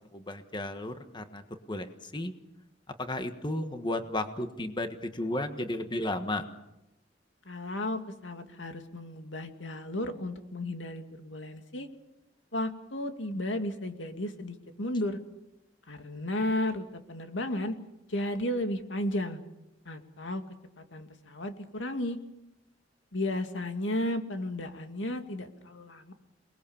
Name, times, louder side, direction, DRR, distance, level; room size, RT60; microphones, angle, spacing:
voice 1, 0.1-1.4 1.7-2.3 3.0-6.4, left 1 dB, 25° left, 8 dB, 1.4 m, -33 dB
voice 2, 7.5-11.9 12.5-15.2 15.9-17.8 18.1-19.4 19.9-20.4 20.8-22.2 23.1-26.1, left 1 dB, 90° left, 6 dB, 2.3 m, -34 dB
29.0 x 20.5 x 7.2 m, 0.91 s
head